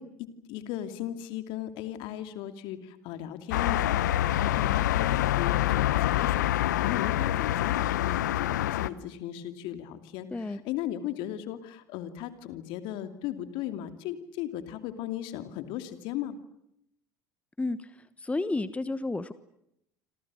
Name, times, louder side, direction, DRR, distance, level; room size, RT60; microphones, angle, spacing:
voice 1, 0.0-6.5 6.8-16.4, left 11 dB, 60° left, 9 dB, 2.7 m, -37 dB
sound 1, 3.5-8.9, left 13 dB, 75° left, 0.9 m, -26 dB
voice 2, 10.3-10.6 17.6-17.9 18.2-19.3, left 2 dB, 15° left, 14 dB, 1.3 m, -31 dB
28.0 x 26.5 x 6.4 m, 0.79 s
hypercardioid pair, 70°, 10 cm